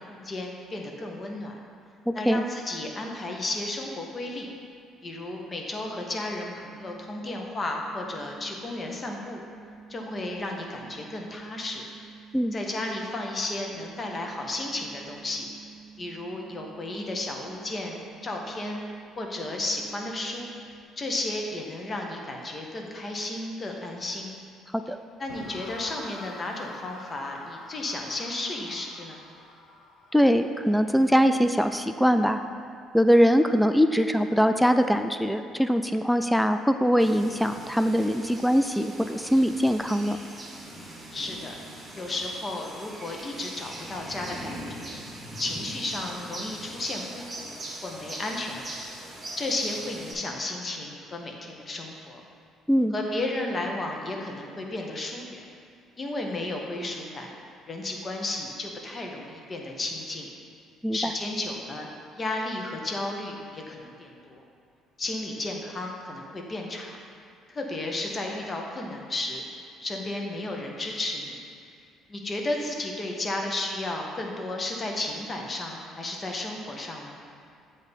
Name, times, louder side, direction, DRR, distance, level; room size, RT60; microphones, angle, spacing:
voice 1, 0.0-1.6 2.1-4.5 5.0-9.4 9.9-11.8 12.5-15.5 16.0-18.8 19.2-20.5 21.0-24.3 25.2-29.2 41.1-41.6 41.9-44.9 45.4-48.8 49.4-52.2 52.9-55.4 56.0-57.3 57.7-60.3 60.9-61.9 62.2-64.4 65.0-67.0 67.5-69.4 69.8-71.4 72.1-77.2, left 2 dB, 35° left, 1 dB, 0.9 m, -33 dB
voice 2, 2.1-2.4 12.3-12.5 24.7-25.0 30.1-32.4 32.9-40.2 52.7-52.9 60.8-61.1, equal, ahead, 8 dB, 0.3 m, -22 dB
sound 1, 6.1-20.8, right 5 dB, 85° right, 0.6 m, -49 dB
sound 2, 25.3-32.4, left 3 dB, 80° left, 0.7 m, -47 dB
sound 3, 37.0-50.1, right 1 dB, 25° right, 1.4 m, -41 dB
7.9 x 2.7 x 5.2 m, 2.4 s
supercardioid pair, 80°, 0 cm